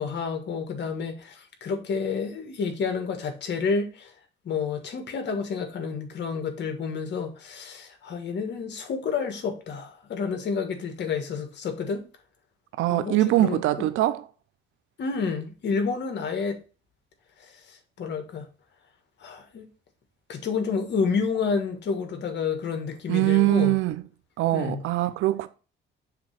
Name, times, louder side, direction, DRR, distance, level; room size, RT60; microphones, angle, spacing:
voice 1, 0.0-4.1 4.4-12.0 12.9-13.6 15.0-16.6 17.4-18.5 19.2-19.7 20.3-23.8 24.5-24.8, left 5 dB, 65° left, 1.5 m, -29 dB
voice 2, 12.8-14.2 23.1-24.0 24.4-25.5, right 16 dB, 90° right, 0.5 m, -22 dB
6.8 x 2.9 x 5.6 m
cardioid pair, 90°, 20 cm